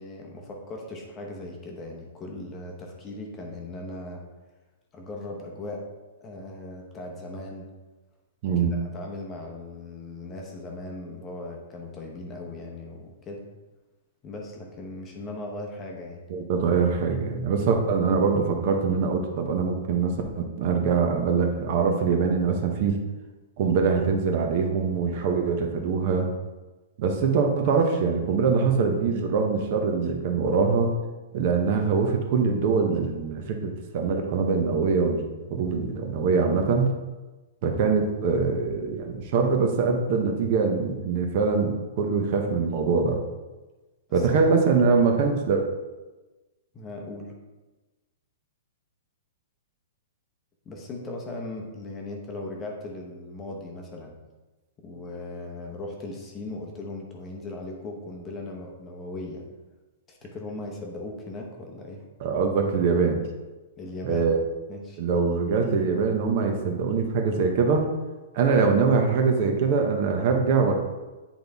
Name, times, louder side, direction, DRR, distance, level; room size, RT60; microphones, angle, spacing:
voice 1, 0.0-4.2 4.9-5.8 6.2-7.6 8.6-13.4 14.2-16.2 44.1-44.3 46.7-47.3 50.6-54.2 54.8-59.4 60.1-62.0 63.8-64.3 64.7-65.0, left 2 dB, 15° left, 0 dB, 0.8 m, -38 dB
voice 2, 8.4-8.7 16.3-23.0 23.6-26.3 27.0-30.9 31.3-36.9 37.6-43.2 44.1-45.6 62.2-63.2 64.0-64.4 65.0-67.9 68.3-70.7, right 5 dB, 40° right, 3 dB, 0.8 m, -23 dB
8.7 x 4.0 x 3.5 m, 1.2 s
hypercardioid pair, 170°, 0 cm